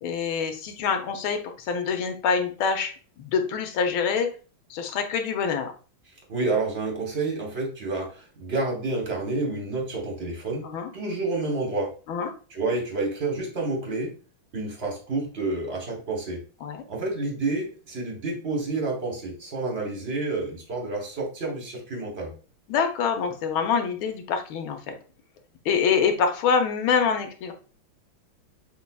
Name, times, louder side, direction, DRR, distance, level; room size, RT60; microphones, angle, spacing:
voice 1, 0.0-2.9 3.2-4.3 4.7-5.7 10.6-10.9 12.1-12.3 16.6-16.8 22.7-24.9 25.6-27.5, left 6 dB, 75° left, 5 dB, 1.5 m, -25 dB
voice 2, 6.3-10.7 10.9-11.9 12.5-14.1 14.5-16.4 16.9-22.3, right 3 dB, 40° right, 0 dB, 1.0 m, -29 dB
6.3 x 2.7 x 2.2 m, 0.37 s
omnidirectional pair, 2.3 m